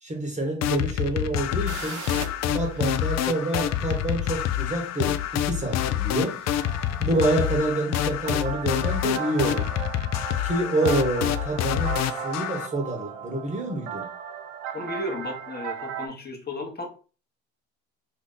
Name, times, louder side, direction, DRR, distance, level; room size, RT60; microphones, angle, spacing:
voice 1, 0.0-2.0 2.4-6.4 7.0-9.7 10.4-14.1, right 2 dB, 20° right, 1.1 m, -27 dB
sound 1, 0.6-12.7, left 11 dB, 45° left, 0.4 m, -27 dB
sound 2, 1.7-7.3, right 5 dB, 50° right, 1.0 m, -44 dB
sound 3, 6.6-16.1, right 9 dB, 85° right, 0.6 m, -37 dB
voice 2, 14.7-16.9, left 2 dB, 25° left, 1.0 m, -34 dB
2.9 x 2.8 x 3.8 m
supercardioid pair, 95°, 38 cm